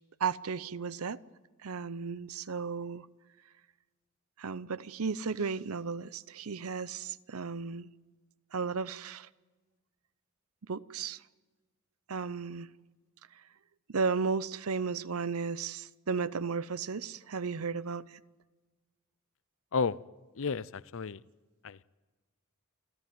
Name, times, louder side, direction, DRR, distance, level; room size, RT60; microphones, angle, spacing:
voice 1, 0.2-1.2 1.6-3.1 4.4-7.9 8.5-9.3 10.7-11.2 12.1-12.7 13.3-13.4 13.9-18.2, right 5 dB, 80° right, 0.7 m, -34 dB
voice 2, 20.3-21.2 21.6-21.8, left 5 dB, 65° left, 0.6 m, -32 dB
28.5 x 14.0 x 9.3 m
head